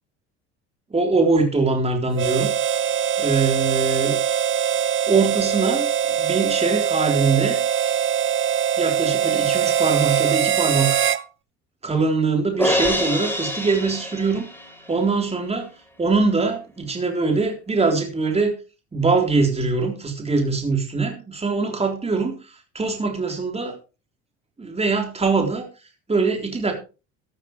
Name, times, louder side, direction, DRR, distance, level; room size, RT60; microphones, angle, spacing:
voice 1, 0.9-4.2 5.1-5.9 6.2-8.0 8.8-11.0 11.8-14.5 14.9-15.7 16.0-18.6 18.9-23.8 24.6-25.7 26.1-26.7, right 4 dB, 20° right, 3 dB, 3.7 m, -22 dB
Harmonica, 2.1-11.2, right 9 dB, 40° right, 0.9 m, -22 dB
Crash cymbal, 12.6-14.9, left 1 dB, 5° left, 5.7 m, -25 dB
13.0 x 12.5 x 3.2 m, 0.31 s
supercardioid pair, 80°, 32 cm